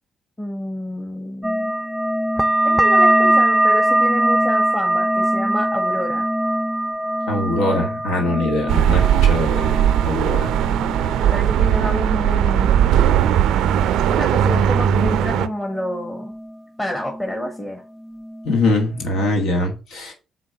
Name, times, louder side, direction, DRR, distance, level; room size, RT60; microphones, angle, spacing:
voice 1, 0.4-1.7 2.6-6.3 11.2-12.9 14.1-16.3 16.8-17.8, left 1 dB, 15° left, 1.5 m, -28 dB
sound 1, 1.4-16.6 16.9-17.7 18.0-18.7 19.1-19.4, right 1 dB, 5° right, 0.4 m, -23 dB
voice 2, 7.3-9.7 10.0-10.5 18.4-20.1, left 2 dB, 80° left, 1.5 m, -22 dB
sound 2, 8.7-15.5, right 10 dB, 85° right, 0.3 m, -18 dB
4.7 x 4.0 x 5.6 m
supercardioid pair, 70°, 0 cm